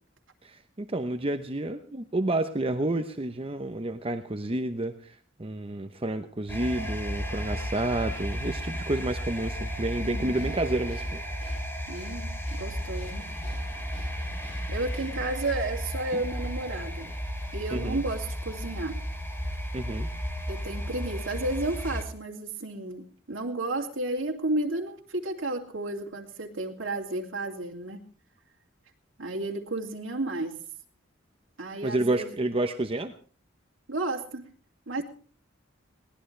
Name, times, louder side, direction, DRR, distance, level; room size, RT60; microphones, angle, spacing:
voice 1, 0.4-11.2 16.1-16.2 17.7-18.0 19.7-20.1 31.8-33.1, right 2 dB, 30° right, 7 dB, 0.9 m, -30 dB
sound 1, 6.5-22.0, equal, 10° left, 3.3 m, -34 dB
voice 2, 10.0-10.5 11.9-13.2 14.7-17.1 17.5-19.0 20.5-28.0 29.2-30.5 31.6-32.3 33.9-34.4 34.9-35.0, right 2 dB, 80° right, 0 dB, 2.7 m, -32 dB
Breathing, 10.3-15.9, left 1 dB, 30° left, 5.7 m, -55 dB
22.0 x 18.0 x 3.3 m, 0.42 s
head